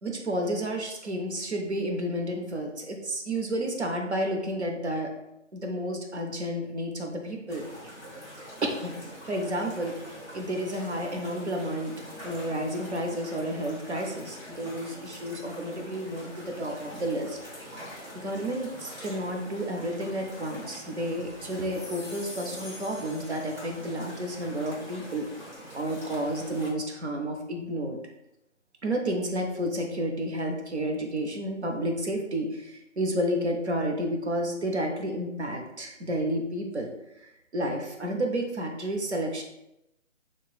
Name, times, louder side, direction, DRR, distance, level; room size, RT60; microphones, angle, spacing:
voice 1, 0.0-5.1 5.5-7.6 8.6-8.9 9.3-9.9 10.3-11.9 12.2-17.4 18.1-25.3 25.7-28.0 28.8-36.9 37.5-39.4, right 1 dB, 60° right, 2 dB, 0.7 m, -31 dB
sound 1, 7.5-26.7, equal, 20° right, 1.1 m, -44 dB
sound 2, 21.6-24.1, left 2 dB, 35° left, 1.0 m, -45 dB
4.3 x 3.0 x 2.3 m, 0.86 s
figure-of-eight pair, 165°, 39 cm